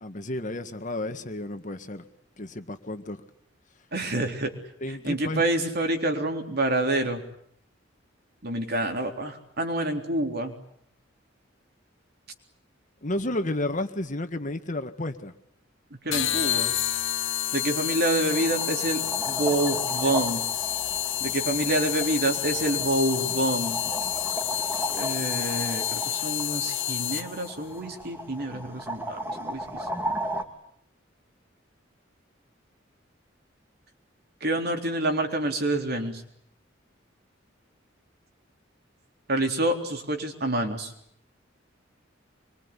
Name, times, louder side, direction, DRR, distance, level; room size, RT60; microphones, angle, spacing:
voice 1, 0.0-2.0 2.4-3.2 4.8-5.4 13.0-15.3, left 1 dB, 40° left, 8 dB, 1.8 m, -32 dB
voice 2, 3.9-4.5 4.9-7.2 8.4-10.5 16.0-16.8 17.5-20.4 21.2-23.8 24.9-29.6 34.4-36.2 39.3-40.9, right 1 dB, 55° right, 4 dB, 3.9 m, -27 dB
sound 1, 16.1-27.5, left 12 dB, 75° left, 1.4 m, -29 dB
sound 2, 18.3-30.4, right 1 dB, 10° right, 2.8 m, -35 dB
25.5 x 23.5 x 9.9 m, 0.69 s
head